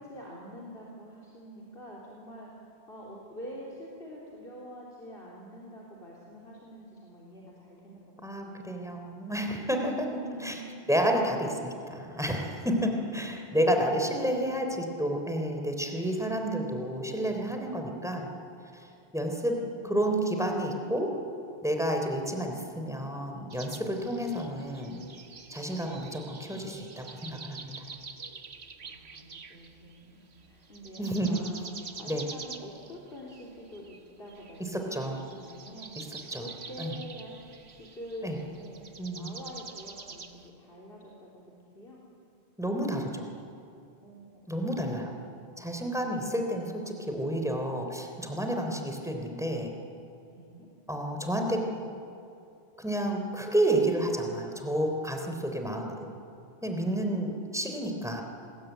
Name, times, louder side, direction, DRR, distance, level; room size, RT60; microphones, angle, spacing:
voice 1, 0.0-8.7 9.9-10.9 12.8-14.2 14.5-14.7 19.5-20.0 28.8-31.6 31.9-36.0 36.3-37.3 37.7-38.8 39.1-42.0 44.0-44.2 50.3-50.7, equal, 60° left, -4 dB, 3.8 m, -46 dB
voice 2, 8.2-9.9 10.4-10.5 10.9-18.3 18.7-18.9 19.1-19.6 19.8-21.1 21.6-25.0 25.5-27.7 31.0-31.4 32.1-32.2 34.7-35.2 36.0-36.1 36.3-36.4 36.8-37.0 38.2-38.4 39.0-39.3 42.6-43.3 44.5-45.1 45.6-49.7 50.9-51.7 52.8-56.1 56.6-58.2, right 1 dB, 5° right, 3 dB, 3.5 m, -30 dB
sound 1, 23.5-30.0 30.3-40.5, right 4 dB, 75° right, 1.8 m, -46 dB
28.0 x 21.0 x 9.3 m, 2.6 s
omnidirectional pair, 1.1 m